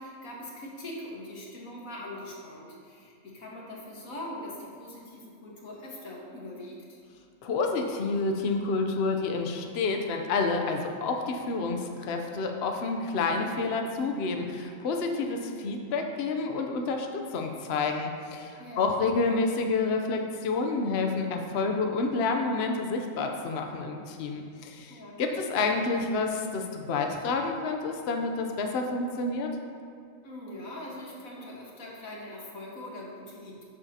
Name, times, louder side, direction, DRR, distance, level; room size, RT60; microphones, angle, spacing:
voice 1, 0.0-7.0 18.6-19.0 24.9-25.4 30.2-33.6, left 1 dB, 90° left, -3 dB, 1.9 m, -42 dB
voice 2, 7.4-29.5, left 3 dB, 55° left, 3 dB, 0.9 m, -29 dB
12.0 x 7.2 x 2.8 m, 2.3 s
omnidirectional pair, 1.4 m